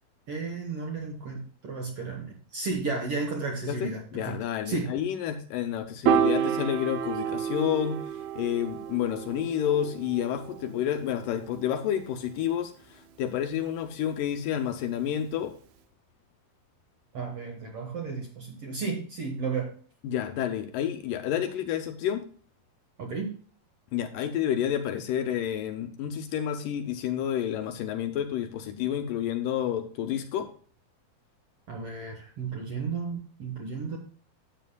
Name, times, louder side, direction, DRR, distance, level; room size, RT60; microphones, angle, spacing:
voice 1, 0.3-4.3 4.7-4.9 17.1-19.7 23.0-23.3 31.7-34.0, right 4 dB, 55° right, 1 dB, 1.8 m, -33 dB
voice 2, 3.7-15.5 20.0-22.2 23.9-30.5, left 10 dB, 75° left, 6 dB, 2.3 m, -30 dB
Piano, 6.1-12.4, right 8 dB, 75° right, 1.8 m, -30 dB
12.5 x 8.2 x 2.2 m, 0.43 s
omnidirectional pair, 4.2 m